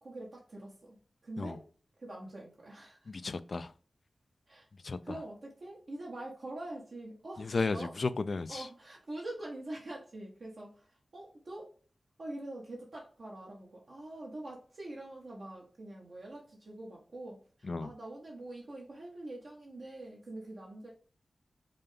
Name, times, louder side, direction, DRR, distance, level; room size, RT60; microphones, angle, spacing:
voice 1, 0.0-1.0 1.2-1.7 2.0-3.1 4.5-4.7 5.0-8.0 8.5-11.7 12.2-20.9, right 1 dB, 70° right, -4 dB, 1.2 m, -45 dB
voice 2, 3.1-3.7 4.8-5.2 7.4-8.7 17.6-17.9, left 3 dB, 65° left, 13 dB, 0.3 m, -34 dB
5.3 x 2.2 x 3.2 m, 0.39 s
cardioid pair, 60°, 0 cm